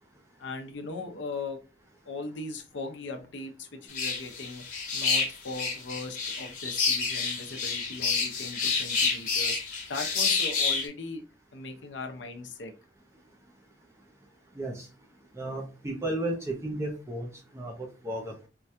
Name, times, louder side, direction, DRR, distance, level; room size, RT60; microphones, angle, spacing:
voice 1, 0.4-1.6 2.1-4.6 4.9-9.6 9.9-11.2 11.5-12.7, left 3 dB, 90° left, 5 dB, 0.7 m, -39 dB
sound 1, 3.9-10.9, left 4 dB, 50° left, 1.0 m, -28 dB
voice 2, 14.6-14.9 15.4-18.5, right 1 dB, 15° right, 0 dB, 0.5 m, -34 dB
4.5 x 2.2 x 2.7 m, 0.32 s
head